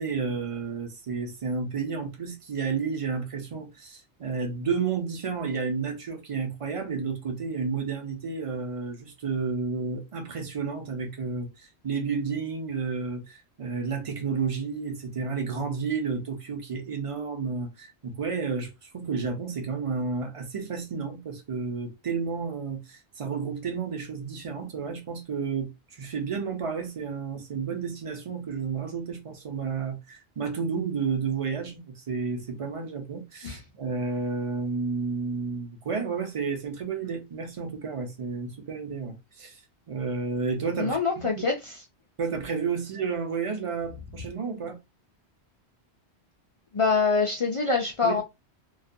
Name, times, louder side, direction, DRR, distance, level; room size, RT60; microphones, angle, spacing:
voice 1, 0.0-39.6 39.9-41.3 42.2-44.8 48.0-48.2, right 5 dB, 40° right, 0.5 m, -31 dB
voice 2, 40.8-41.8 46.7-48.2, left 4 dB, 60° left, 0.3 m, -25 dB
2.3 x 2.1 x 2.5 m
omnidirectional pair, 1.1 m